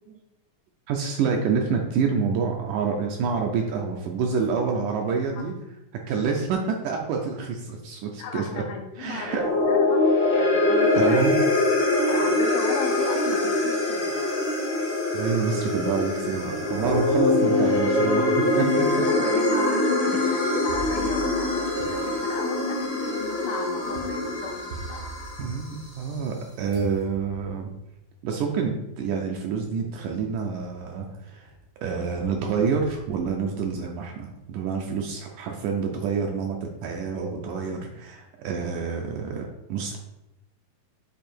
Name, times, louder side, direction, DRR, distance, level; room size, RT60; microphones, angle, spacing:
voice 1, 0.9-5.5 5.9-8.6 9.0-9.4 11.0-11.4 15.1-19.1 25.4-27.7 28.2-31.5 31.8-40.0, right 5 dB, 75° right, 1 dB, 2.0 m, -27 dB
voice 2, 8.2-9.4 9.7-10.0 10.3-11.3 12.1-14.2 19.1-25.1, left 6 dB, 80° left, 3 dB, 2.2 m, -35 dB
sound 1, 9.2-25.6, left 2 dB, 45° left, 0.8 m, -23 dB
sound 2, 16.7-17.1 17.7-17.8 18.7-18.8 20.7-26.4 26.7-27.7 28.9-29.0 29.5-29.9 30.3-31.1 31.5-33.8, right 3 dB, 60° right, 1.2 m, -42 dB
8.1 x 2.8 x 4.4 m, 0.89 s
omnidirectional pair, 4.0 m